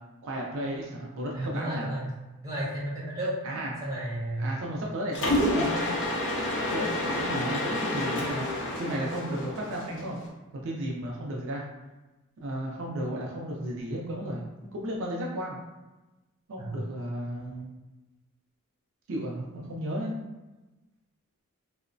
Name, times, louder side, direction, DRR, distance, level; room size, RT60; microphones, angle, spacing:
voice 1, 0.2-1.9 3.4-3.7 4.4-5.9 6.6-10.2 10.5-11.6 12.4-14.4 14.7-15.6 16.5-17.7 19.1-20.1, right 1 dB, 60° right, -2 dB, 0.4 m, -34 dB
voice 2, 1.3-2.1 2.4-3.3 3.8-4.5 16.6-16.7, right 1 dB, 15° right, -7 dB, 0.7 m, -32 dB
Mechanisms, 5.1-10.2, left 1 dB, 60° left, 0.5 m, -29 dB
2.9 x 2.0 x 2.5 m, 1.1 s
head